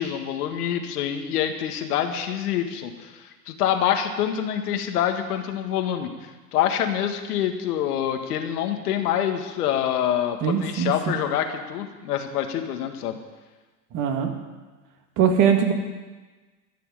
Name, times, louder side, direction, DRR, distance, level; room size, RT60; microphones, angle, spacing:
voice 1, 0.0-13.2, left 10 dB, 70° left, 6 dB, 1.8 m, -26 dB
voice 2, 10.4-11.2 13.9-14.3 15.2-15.7, right 7 dB, 40° right, 4 dB, 2.3 m, -21 dB
14.5 x 6.9 x 9.9 m, 1.3 s
hypercardioid pair, 100°, 48 cm